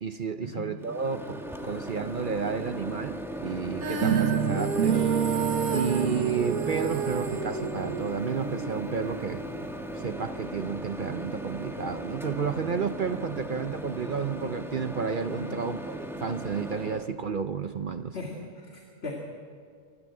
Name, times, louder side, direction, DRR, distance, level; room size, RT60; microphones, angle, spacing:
voice 1, 0.0-5.0 5.7-9.4 9.9-18.2, right 6 dB, 50° right, 10 dB, 0.6 m, -31 dB
Microwave oven, 0.8-17.1, equal, ahead, 1.5 m, -38 dB
Female singing, 3.8-10.0, right 5 dB, 90° right, 1.9 m, -33 dB
sound 1, 4.0-9.9, right 7 dB, 65° right, 1.3 m, -29 dB
voice 2, 18.1-19.1, left 3 dB, 45° left, -1 dB, 2.4 m, -39 dB
27.0 x 12.5 x 7.6 m, 2.3 s
omnidirectional pair, 1.5 m